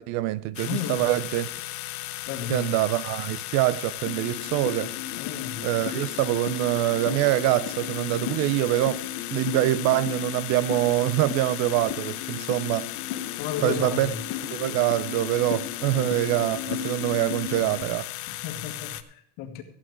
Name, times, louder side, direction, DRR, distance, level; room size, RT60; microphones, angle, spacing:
voice 1, 0.0-1.5 2.5-4.9 5.6-9.0 9.3-12.9 13.6-14.1 14.5-18.1, right 16 dB, 55° right, 0.5 m, -25 dB
sound 1, 0.5-19.0, left 17 dB, 85° left, 0.9 m, -36 dB
voice 2, 0.7-1.1 2.3-2.7 5.2-5.6 13.4-14.2 15.9-16.1 17.5-17.7 18.3-19.6, left 9 dB, 60° left, 1.8 m, -34 dB
sound 2, 4.1-17.9, left 10 dB, 45° left, 0.7 m, -36 dB
14.5 x 8.7 x 4.7 m
cardioid pair, 165°, 34 cm